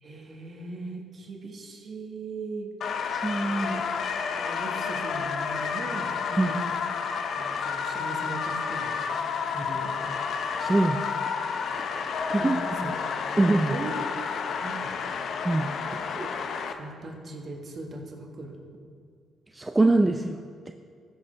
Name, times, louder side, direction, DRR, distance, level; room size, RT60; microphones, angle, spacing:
voice 1, 0.0-2.7 3.6-3.7 4.2-6.6 7.3-9.0 9.5-9.9 12.4-12.5 12.8-12.9 13.4-14.0 14.3-14.9 15.9-16.3 16.7-18.7, right 2 dB, 45° right, 2 dB, 1.5 m, -39 dB
sound 1, 2.8-16.7, left 6 dB, 65° left, 0.6 m, -30 dB
voice 2, 3.2-3.8 6.4-6.5 10.6-11.0 11.8-12.0 12.3-12.6 13.4-13.8 15.4-15.7 19.5-20.4 20.7-20.8, right 2 dB, 15° right, 6 dB, 0.4 m, -23 dB
14.5 x 6.7 x 3.3 m, 2.3 s
cardioid pair, 90°, 0 cm